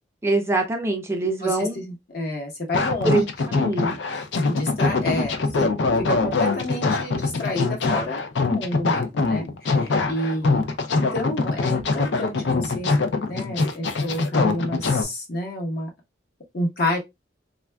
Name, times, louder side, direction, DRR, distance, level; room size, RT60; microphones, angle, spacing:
voice 1, 0.2-1.8 3.0-4.0, right 2 dB, 15° right, 0.4 m, -24 dB
voice 2, 1.2-3.1 4.5-5.7 6.0-10.6 10.9-12.9 13.2-15.9 16.5-17.0, left 1 dB, 55° left, 1.0 m, -29 dB
sound 1, 2.7-15.0, left 3 dB, 70° left, 0.4 m, -23 dB
3.3 x 2.4 x 2.2 m
head